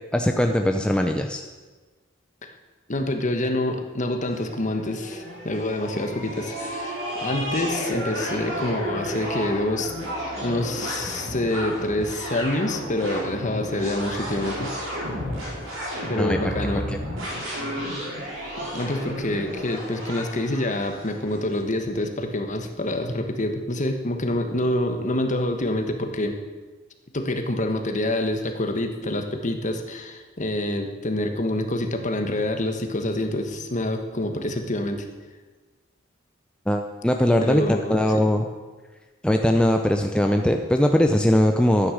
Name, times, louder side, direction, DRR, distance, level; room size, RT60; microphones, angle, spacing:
voice 1, 0.1-1.4 16.2-16.4 36.7-37.6 37.9-38.4 39.2-41.9, left 1 dB, 5° left, 4 dB, 0.6 m, -20 dB
voice 2, 2.9-9.9 10.4-14.7 16.1-16.8 18.6-26.4 27.1-35.1 37.4-38.3, left 1 dB, 40° left, 5 dB, 1.3 m, -27 dB
sound 1, 4.3-21.4, equal, 80° right, 4.8 m, -32 dB
13.0 x 9.8 x 6.5 m, 1.3 s
head